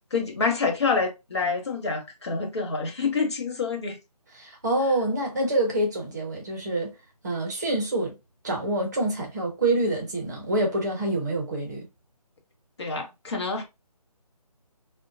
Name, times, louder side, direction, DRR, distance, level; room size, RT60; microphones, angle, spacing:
voice 1, 0.1-4.0 12.8-13.6, left 4 dB, 45° left, 0.8 m, -27 dB
voice 2, 4.3-6.9 7.2-8.2 8.4-11.9, right 1 dB, 25° right, 0.7 m, -26 dB
3.6 x 2.2 x 2.4 m
figure-of-eight pair, 155°, 20 cm